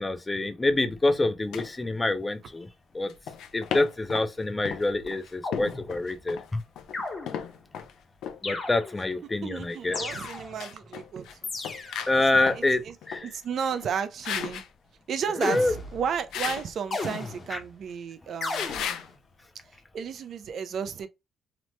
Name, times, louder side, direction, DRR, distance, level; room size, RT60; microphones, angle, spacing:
voice 1, 0.0-2.7 2.9-3.1 3.5-6.6 8.4-10.0 12.1-12.8 13.1-13.3 15.4-15.7 17.5-17.6, left 2 dB, 20° left, 0.5 m, -26 dB
sound 1, 1.5-1.7 3.1-4.3 4.7-7.9 8.2-8.4 9.7-11.3 11.6-12.7 13.0-13.3 13.7-13.9 14.2-14.7 16.3-16.7 18.5-19.1, left 8 dB, 85° left, 0.4 m, -35 dB
sound 2, 5.4-6.2 6.9-7.7 8.4-9.2 9.9-10.7 11.4-12.2 15.4-16.2 16.9-17.7 18.4-19.2, left 3 dB, 40° left, 0.9 m, -35 dB
voice 2, 9.2-11.3 12.3-12.9 13.2-14.6 15.1-18.7 19.9-21.1, right 7 dB, 65° right, 0.4 m, -33 dB
3.0 x 2.1 x 3.0 m
cardioid pair, 85°, 0 cm